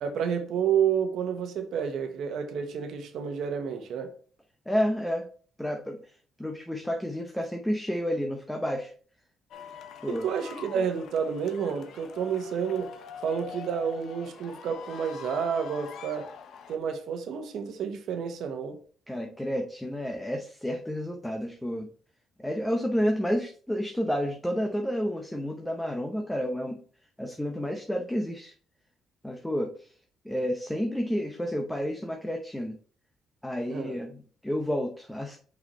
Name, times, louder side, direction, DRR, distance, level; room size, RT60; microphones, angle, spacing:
voice 1, 0.0-4.1 10.1-12.9 13.2-16.3 16.7-18.8 33.7-33.9, right 7 dB, 75° right, 1.1 m, -30 dB
voice 2, 4.7-5.3 5.6-8.9 10.0-10.3 19.1-21.9 22.4-26.8 27.2-28.5 29.2-29.9 30.2-32.8 33.4-35.4, equal, 5° left, 0.8 m, -30 dB
sound 1, 9.5-16.8, left 7 dB, 70° left, 0.8 m, -44 dB
5.4 x 4.5 x 4.1 m
cardioid pair, 90°, 0 cm